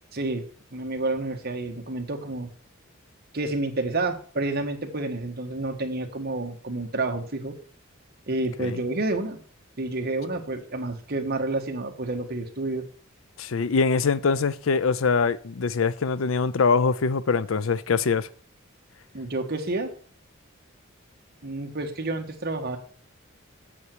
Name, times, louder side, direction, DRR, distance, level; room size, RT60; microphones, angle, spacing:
voice 1, 0.7-2.5 3.3-7.6 8.3-9.4 9.8-12.8 19.1-19.9 21.4-22.8, right 2 dB, 50° right, 1.5 m, -29 dB
voice 2, 13.4-18.3, left 5 dB, 75° left, 0.5 m, -23 dB
8.4 x 8.0 x 4.7 m
head